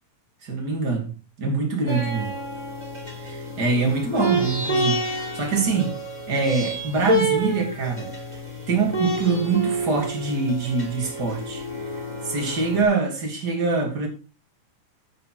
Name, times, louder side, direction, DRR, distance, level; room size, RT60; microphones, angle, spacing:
voice 1, 0.4-2.3 3.2-6.0 6.3-8.1 8.7-12.0 12.2-14.1, right 4 dB, 30° right, 2.9 m, -24 dB
sound 1, 1.9-12.8, equal, 10° right, 3.7 m, -28 dB
8.7 x 8.7 x 4.5 m
omnidirectional pair, 3.9 m